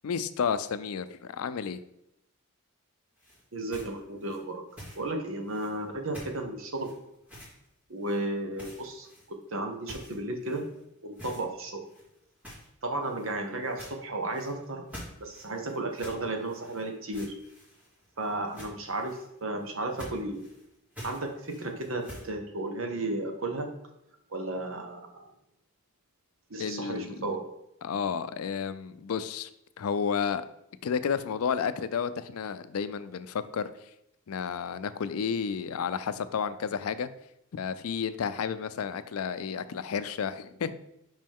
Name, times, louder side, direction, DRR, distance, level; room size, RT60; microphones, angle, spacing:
voice 1, 0.0-1.8 26.6-27.2 27.8-29.5 29.8-30.4 30.8-33.7 34.3-37.1 37.5-40.7, left 6 dB, 80° left, 13 dB, 0.4 m, -31 dB
sound 1, 3.2-5.1 5.5-5.9 6.1-6.4 6.7-7.7 8.0-8.2 8.5-9.5 9.8-10.8 11.1-11.4 11.8-22.3, equal, 5° right, 1.7 m, -48 dB
voice 2, 3.5-4.6 5.0-6.9 7.9-10.6 11.0-11.9 12.8-14.8 15.2-17.3 18.2-20.5 21.0-23.7 24.3-25.2 26.5-27.4, right 2 dB, 65° right, 4 dB, 1.0 m, -34 dB
5.3 x 5.3 x 3.6 m, 0.82 s
head